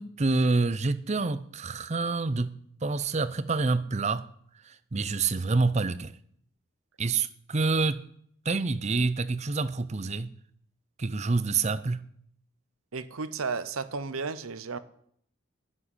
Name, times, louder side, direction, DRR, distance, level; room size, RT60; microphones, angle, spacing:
voice 1, 0.0-2.5 2.8-4.2 4.6-6.1 7.0-8.0 8.4-10.3 11.0-12.0, right 3 dB, 30° right, 0.6 m, -27 dB
voice 2, 12.9-14.8, right 4 dB, 85° right, 0.8 m, -33 dB
11.0 x 7.7 x 9.9 m
head